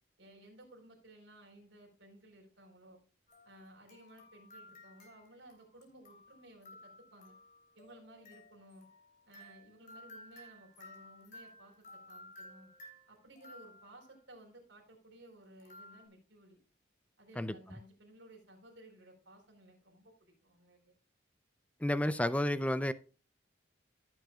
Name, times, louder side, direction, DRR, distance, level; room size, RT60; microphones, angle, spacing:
voice 1, 0.2-3.0 3.4-7.4 7.8-8.9 9.3-12.7 13.1-16.6 17.2-20.9, right 1 dB, 75° right, 4.1 m, -57 dB
sound 1, 3.3-14.2 15.6-16.1, left 1 dB, 45° left, 3.0 m, -56 dB
voice 2, 21.8-22.9, left 1 dB, 5° left, 0.4 m, -31 dB
15.0 x 7.8 x 2.3 m
head